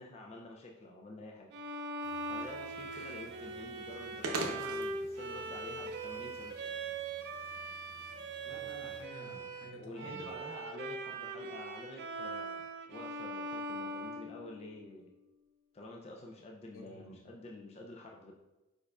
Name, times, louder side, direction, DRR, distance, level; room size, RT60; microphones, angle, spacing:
voice 1, 0.0-1.5 2.2-6.7 9.8-15.1 15.7-18.3, left 1 dB, 30° left, 0 dB, 0.3 m, -49 dB
Bowed string instrument, 1.5-15.0, right 2 dB, 50° right, 0.4 m, -41 dB
sound 1, 2.0-9.0, right 2 dB, 85° right, 0.7 m, -46 dB
voice 2, 8.4-10.4 16.7-17.2, equal, 65° left, 1 dB, 0.8 m, -51 dB
4.7 x 4.4 x 2.3 m, 1.0 s
head